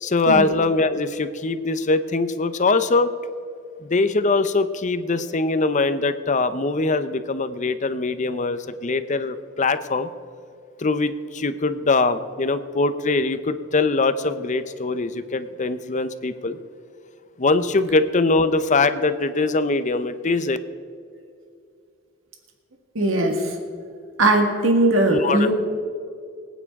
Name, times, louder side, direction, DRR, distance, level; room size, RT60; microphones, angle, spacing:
voice 1, 0.0-3.1 3.8-10.1 10.8-16.6 17.4-20.6 25.1-25.5, left 3 dB, 40° left, 12 dB, 0.7 m, -22 dB
voice 2, 23.0-23.5 24.2-25.5, right 1 dB, 85° right, 2 dB, 1.8 m, -19 dB
24.5 x 9.2 x 3.7 m, 2.4 s
head